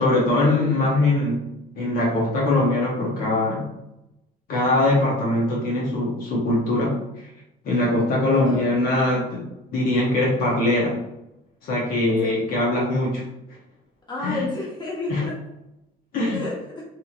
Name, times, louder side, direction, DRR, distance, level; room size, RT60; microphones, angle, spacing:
voice 1, 0.0-1.5 1.7-3.7 4.5-7.0 7.6-11.0 11.6-13.3 14.2-14.5 15.1-15.3 16.1-16.4, left 2 dB, 60° left, -4 dB, 0.8 m, -22 dB
voice 2, 8.4-8.8 12.1-12.5 14.1-15.3 16.3-16.8, left 2 dB, 25° left, -4 dB, 1.1 m, -31 dB
3.0 x 2.7 x 2.4 m, 0.88 s
cardioid pair, 110°, 17 cm